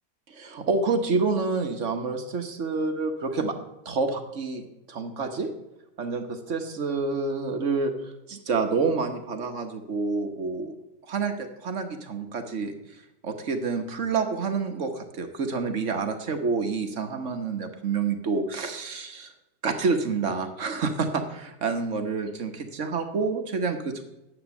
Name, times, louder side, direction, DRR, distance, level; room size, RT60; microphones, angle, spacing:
voice 1, 0.3-3.6 3.8-5.5 6.0-10.7 11.0-19.3 19.6-24.0, right 4 dB, 50° right, 6 dB, 1.3 m, -28 dB
9.9 x 7.9 x 7.0 m, 0.95 s
omnidirectional pair, 1.7 m